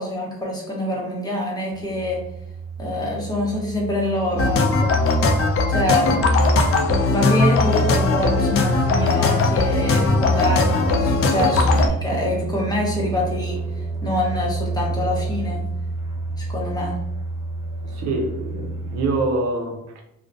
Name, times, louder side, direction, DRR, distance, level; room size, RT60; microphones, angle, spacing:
voice 1, 0.0-2.2 2.8-4.9 5.7-6.2 7.1-15.6 16.4-17.0, left 1 dB, 15° left, -3 dB, 0.8 m, -25 dB
sound 1, 1.7-19.1, right 4 dB, 20° right, 0.5 m, -31 dB
sound 2, 4.4-11.9, left 3 dB, 50° left, 0.4 m, -19 dB
voice 2, 17.8-20.0, right 2 dB, 65° right, 1 dB, 0.6 m, -25 dB
2.3 x 2.1 x 2.5 m, 0.79 s
cardioid pair, 90°, 30 cm